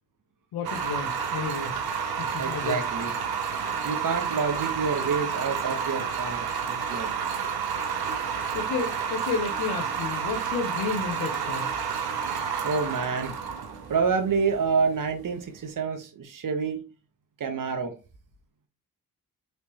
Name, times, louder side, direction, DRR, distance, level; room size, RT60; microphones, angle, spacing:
voice 1, 0.5-1.8 2.2-2.8 8.5-11.7, left 5 dB, 90° left, 0.6 m, -32 dB
sound 1, 0.6-15.6, right 6 dB, 90° right, 0.7 m, -30 dB
voice 2, 2.4-3.1 3.8-6.4 6.7-7.1 12.6-13.3 13.9-16.8 17.4-17.9, right 5 dB, 60° right, 0.9 m, -28 dB
3.3 x 3.1 x 2.9 m
cardioid pair, 50°, 37 cm